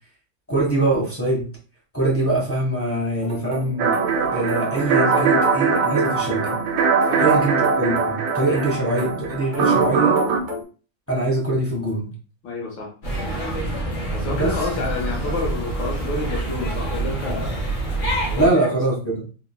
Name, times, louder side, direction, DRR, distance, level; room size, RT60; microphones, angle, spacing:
voice 1, 0.5-1.5 1.9-6.6 7.2-10.2 11.1-12.1 14.3-14.5 18.3-19.3, right 2 dB, 10° left, -5 dB, 1.1 m, -23 dB
sound 1, 3.2-10.6, left 1 dB, 50° right, 0.5 m, -33 dB
sound 2, 3.8-10.4, right 5 dB, 80° right, 1.4 m, -21 dB
voice 2, 4.9-5.3 7.1-7.2 8.5-8.8 12.4-12.9 14.1-17.7 18.3-18.8, left 3 dB, 70° left, 0 dB, 2.0 m, -29 dB
sound 3, 13.0-18.5, right 2 dB, 40° left, 1.5 m, -26 dB
3.8 x 3.7 x 2.2 m, 0.36 s
omnidirectional pair, 2.1 m